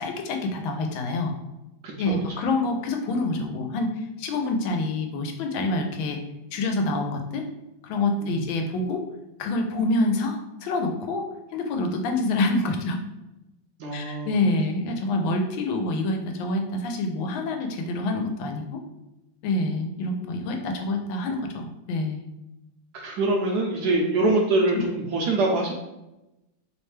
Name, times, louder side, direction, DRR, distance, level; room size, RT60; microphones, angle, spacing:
voice 1, 0.0-1.3 2.0-6.2 6.5-7.5 7.8-9.0 9.4-11.3 11.5-13.0 13.9-18.8 19.4-22.3, left 2 dB, 90° left, 4 dB, 1.4 m, -27 dB
voice 2, 1.8-2.4 8.2-8.6 13.8-14.4 22.9-25.7, right 2 dB, 75° right, 0 dB, 1.0 m, -24 dB
3.4 x 3.2 x 3.2 m, 0.95 s
omnidirectional pair, 2.1 m